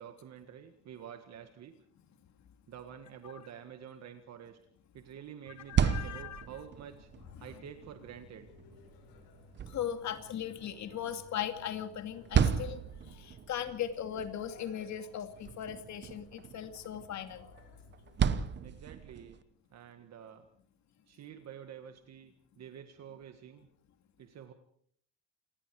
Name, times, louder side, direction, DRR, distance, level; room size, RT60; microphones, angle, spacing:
voice 1, 0.0-1.7 2.7-4.6 4.9-7.1 7.4-8.5 18.6-19.4 19.7-20.5 21.1-23.7 24.2-24.5, right 8 dB, 45° right, 7 dB, 1.7 m, -49 dB
sound 1, 5.5-19.4, right 7 dB, 30° right, 1.0 m, -36 dB
voice 2, 5.7-6.5 9.6-17.5, left 9 dB, 45° left, 8 dB, 2.5 m, -38 dB
sound 2, 6.9-18.8, left 7 dB, 70° left, 5.5 m, -60 dB
28.5 x 19.5 x 4.8 m, 0.62 s
cardioid pair, 160°, 37 cm